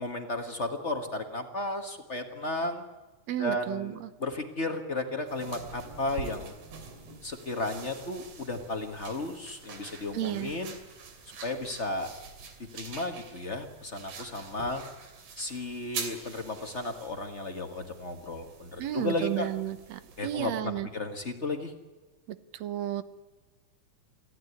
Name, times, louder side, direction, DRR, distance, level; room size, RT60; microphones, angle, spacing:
voice 1, 0.0-2.8 3.4-6.5 7.2-10.7 11.4-12.1 12.6-14.8 15.4-19.5 20.2-21.7, left 2 dB, 45° left, 5 dB, 0.9 m, -34 dB
voice 2, 3.3-4.1 10.1-10.6 18.8-20.9 22.3-23.0, right 12 dB, 65° right, 13 dB, 1.9 m, -33 dB
sound 1, 5.3-20.3, right 5 dB, 90° right, 4.4 m, -45 dB
24.0 x 15.5 x 9.8 m, 1.2 s
omnidirectional pair, 3.8 m